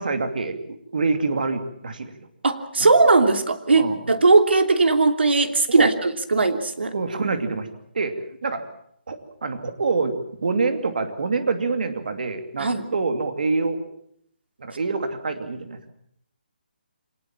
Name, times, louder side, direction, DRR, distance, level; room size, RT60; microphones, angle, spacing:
voice 1, 0.0-2.1 2.8-2.9 3.7-4.1 5.7-5.9 6.9-7.7 7.9-8.6 9.1-13.8 14.6-15.9, right 4 dB, 55° right, 8 dB, 2.6 m, -26 dB
voice 2, 2.4-6.9 12.6-12.9, right 3 dB, 90° right, 7 dB, 3.0 m, -19 dB
26.0 x 19.0 x 7.4 m, 0.69 s
hypercardioid pair, 175°, 6 cm